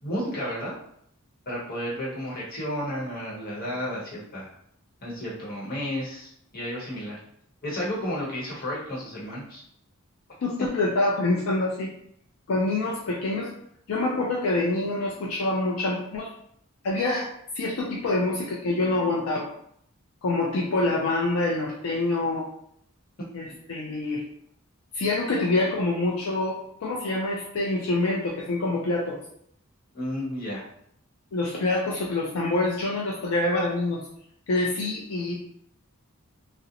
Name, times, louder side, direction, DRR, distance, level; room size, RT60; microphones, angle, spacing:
voice 1, 0.0-0.7 1.5-4.5 5.0-7.2 7.6-9.6 29.9-30.6, equal, 45° left, -6 dB, 0.9 m, -32 dB
voice 2, 10.4-11.9 12.5-13.5 13.9-16.3 16.8-17.3 17.5-19.5 20.2-22.5 23.3-24.2 24.9-29.2 31.3-34.0 34.5-35.4, left 2 dB, 75° left, -3 dB, 0.4 m, -26 dB
2.5 x 2.0 x 2.8 m, 0.69 s
head